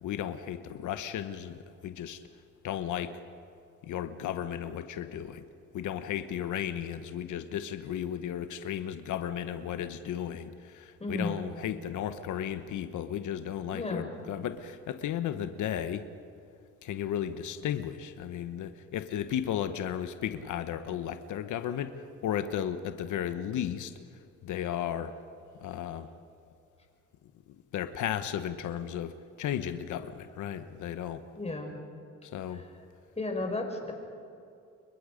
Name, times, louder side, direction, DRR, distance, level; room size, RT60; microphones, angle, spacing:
voice 1, 0.0-2.2 2.6-3.1 3.8-5.4 5.7-16.1 16.8-21.9 22.2-23.9 24.4-25.1 25.6-26.1 27.7-31.2 32.3-32.6, left 10 dB, 80° left, 11 dB, 1.1 m, -34 dB
voice 2, 11.0-11.4 13.7-14.1 31.4-31.7 32.5-32.6 33.2-33.9, left 2 dB, 20° left, 2 dB, 5.0 m, -33 dB
29.5 x 22.5 x 5.2 m, 2.5 s
cardioid pair, 90°, 30 cm